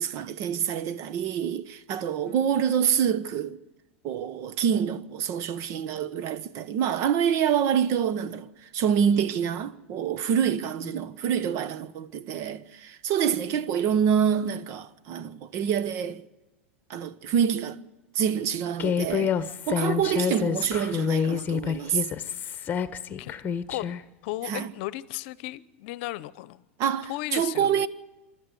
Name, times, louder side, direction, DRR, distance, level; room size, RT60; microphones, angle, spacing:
voice 1, 0.0-3.6 4.0-16.2 16.9-17.8 18.1-19.3 19.7-22.0 24.5-24.7 26.8-27.9, right 8 dB, 50° right, 1.1 m, -26 dB
Human voice, 18.8-24.0, left 7 dB, 30° left, 1.2 m, -28 dB
voice 2, 20.1-20.5 22.4-22.8 23.2-23.3 23.7-23.9 24.2-26.6 27.0-27.9, left 17 dB, 60° left, 0.8 m, -36 dB
25.0 x 13.0 x 8.0 m
hypercardioid pair, 100°, 6 cm